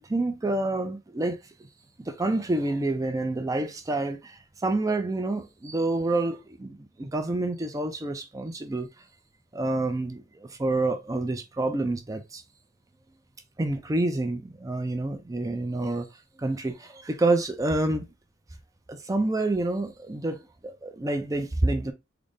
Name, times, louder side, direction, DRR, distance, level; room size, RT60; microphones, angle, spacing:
voice 1, 0.0-1.4 2.1-8.9 9.5-12.4 13.6-16.1 16.4-18.0 18.9-21.9, right 2 dB, 20° right, 0.4 m, -28 dB
3.8 x 2.0 x 3.5 m
head